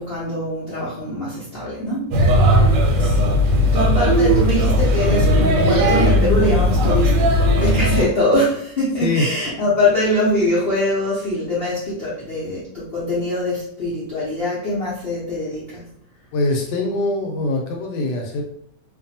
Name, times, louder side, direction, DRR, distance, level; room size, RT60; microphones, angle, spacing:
voice 1, 0.0-2.1 3.0-15.8, left 1 dB, 60° left, -8 dB, 0.6 m, -23 dB
Male speech man speaking / Child speech kid speaking / Chatter, 2.1-8.1, equal, 90° right, 1.3 m, -16 dB
voice 2, 16.3-18.4, left 2 dB, 75° left, 2 dB, 1.1 m, -22 dB
2.6 x 2.5 x 2.7 m, 0.68 s
omnidirectional pair, 1.9 m